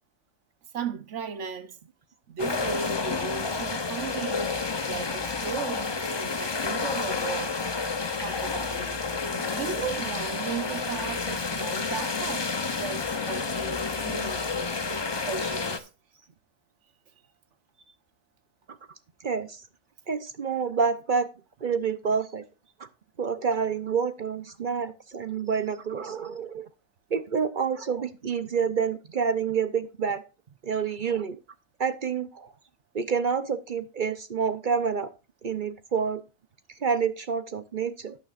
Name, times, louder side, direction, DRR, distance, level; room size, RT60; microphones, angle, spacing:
voice 1, 0.7-1.8 2.3-4.5 4.8-7.6 8.2-9.0 9.5-15.8, right 6 dB, 80° right, 1.3 m, -36 dB
sound 1, 2.4-15.8, left 4 dB, 25° left, 0.7 m, -30 dB
voice 2, 19.2-19.6 20.1-21.3 21.6-22.4 22.8-22.9 23.2-26.6 27.1-30.2 30.6-31.4 31.8-32.5 32.9-35.1 35.4-36.2 36.8-38.2, right 6 dB, 50° right, 0.8 m, -28 dB
12.0 x 9.2 x 2.5 m
omnidirectional pair, 1.2 m